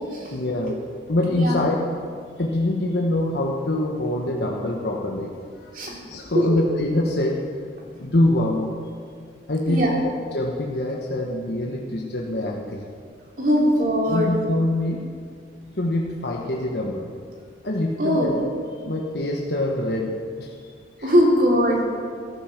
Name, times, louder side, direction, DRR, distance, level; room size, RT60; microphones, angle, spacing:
voice 1, 0.3-0.8 1.1-1.8 2.4-5.3 5.6-5.8 6.1-7.4 8.0-8.7 9.5-9.8 10.3-12.8 14.1-15.0 15.7-17.1 17.6-18.3 18.8-20.5 21.0-21.1, left 1 dB, 65° left, -1 dB, 1.3 m, -24 dB
voice 2, 9.7-10.0 13.4-14.3 18.0-18.3 21.0-21.8, equal, 50° right, -2 dB, 2.9 m, -20 dB
14.0 x 12.5 x 5.9 m, 2.1 s
head